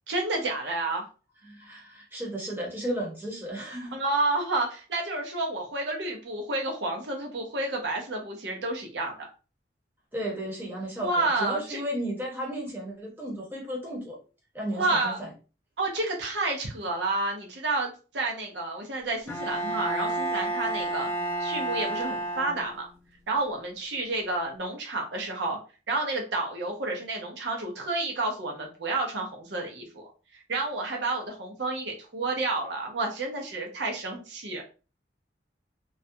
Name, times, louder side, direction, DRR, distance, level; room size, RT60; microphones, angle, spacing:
voice 1, 0.1-1.1 3.9-9.3 11.0-11.8 14.7-15.2 15.8-21.1 21.4-22.9 23.3-25.6 25.9-30.1 30.5-34.6, right 2 dB, 75° right, 1 dB, 0.6 m, -30 dB
voice 2, 1.5-4.0 10.1-14.2 14.5-15.3, right 1 dB, 10° right, -3 dB, 0.7 m, -34 dB
Bowed string instrument, 19.3-23.0, right 2 dB, 15° left, 0.3 m, -30 dB
2.3 x 2.1 x 2.7 m, 0.34 s
head